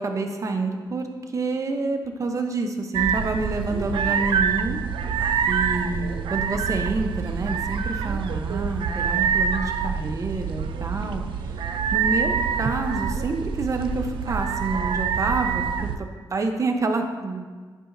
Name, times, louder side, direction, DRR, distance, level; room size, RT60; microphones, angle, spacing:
voice 1, 0.0-4.8 5.5-15.6 16.0-17.5, right 3 dB, 40° right, 5 dB, 0.7 m, -28 dB
sound 1, 2.9-16.0, right 7 dB, 85° right, 0.4 m, -26 dB
11.0 x 5.0 x 2.6 m, 1.5 s
cardioid pair, 100°, 8 cm